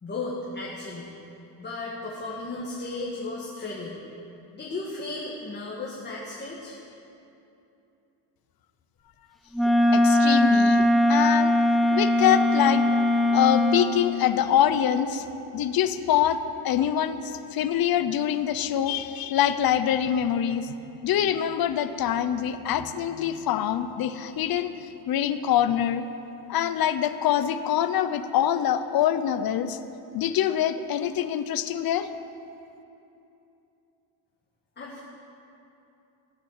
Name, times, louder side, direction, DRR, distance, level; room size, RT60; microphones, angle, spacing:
voice 1, 0.0-1.1 1.6-4.0 4.5-6.8 34.8-35.0, left 2 dB, 20° left, -5 dB, 1.6 m, -35 dB
Wind instrument woodwind instrument, 9.5-13.9, left 1 dB, ahead, 0.4 m, -20 dB
voice 2, 9.9-11.6 11.9-13.0 13.3-15.3 15.5-20.7 21.0-26.0 26.5-29.8 30.1-32.1, left 10 dB, 50° left, 11 dB, 0.7 m, -25 dB
15.5 x 8.8 x 7.4 m, 2.8 s
cardioid pair, 160°, 48 cm